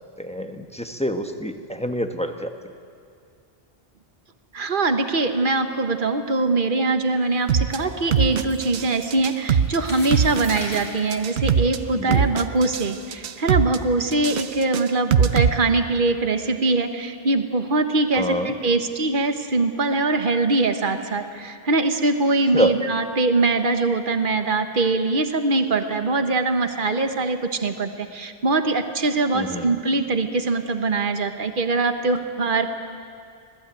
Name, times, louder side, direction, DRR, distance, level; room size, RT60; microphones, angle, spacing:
voice 1, 0.2-2.5 11.9-12.2 18.1-18.5 22.5-22.8 29.3-29.7, equal, 5° left, 6 dB, 1.3 m, -26 dB
voice 2, 4.5-32.7, right 3 dB, 50° right, 7 dB, 1.5 m, -22 dB
sound 1, 7.2-12.2 12.6-12.7 13.2-13.3, equal, 30° left, 5.9 m, -41 dB
sound 2, 7.5-7.8 8.1-8.9 9.1-9.8 10.1-10.8 11.1-11.8 12.1-12.9 13.1-13.8 14.1-15.5, right 7 dB, 80° right, 1.1 m, -21 dB
26.0 x 18.5 x 9.1 m, 2.3 s
omnidirectional pair, 1.1 m